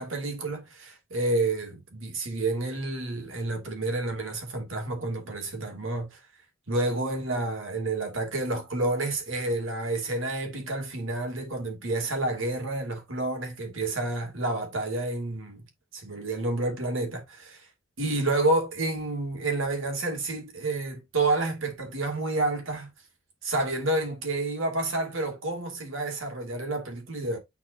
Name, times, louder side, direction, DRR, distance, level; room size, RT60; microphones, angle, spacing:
voice 1, 0.0-6.2 6.7-15.6 15.9-17.7 18.0-22.9 23.4-27.4, right 2 dB, 80° right, 2.4 m, -29 dB
9.6 x 4.2 x 2.6 m
head